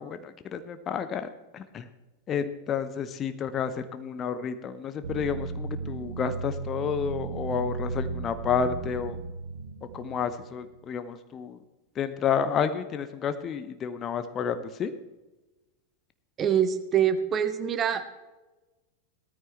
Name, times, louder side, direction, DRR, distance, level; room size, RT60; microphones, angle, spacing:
voice 1, 0.0-1.9 2.3-9.2 9.9-11.6 12.0-14.9, left 7 dB, 25° left, 10 dB, 0.9 m, -30 dB
sound 1, 5.0-10.8, right 4 dB, 65° right, 1.2 m, -35 dB
voice 2, 16.4-18.0, right 8 dB, 25° right, 10 dB, 1.2 m, -25 dB
16.5 x 14.0 x 3.3 m, 1.1 s
figure-of-eight pair, 90°, 0 cm